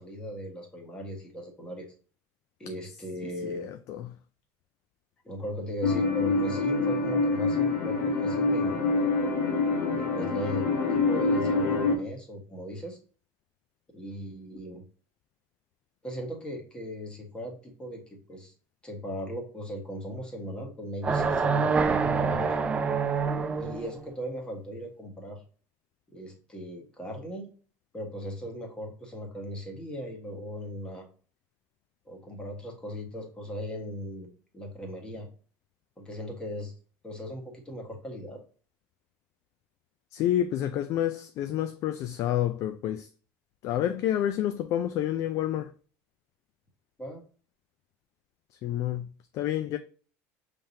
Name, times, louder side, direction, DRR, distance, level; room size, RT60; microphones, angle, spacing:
voice 1, 0.0-1.9 2.6-3.7 5.2-8.8 9.9-13.0 13.9-14.8 16.0-18.5 18.8-22.6 23.6-25.4 26.1-27.5 27.9-31.1 32.1-34.3 34.5-35.3 36.0-36.7 37.0-38.4 47.0-47.2, equal, 15° left, 1.4 m, -38 dB
sound 1, 5.8-12.0, left 3 dB, 85° left, 1.5 m, -26 dB
sound 2, 21.0-23.9, right 5 dB, 15° right, 0.4 m, -26 dB
voice 2, 40.1-43.1 43.6-45.7 48.6-49.1 49.3-49.8, left 11 dB, 45° left, 0.4 m, -28 dB
5.6 x 3.4 x 2.7 m
cardioid pair, 150°, 7 cm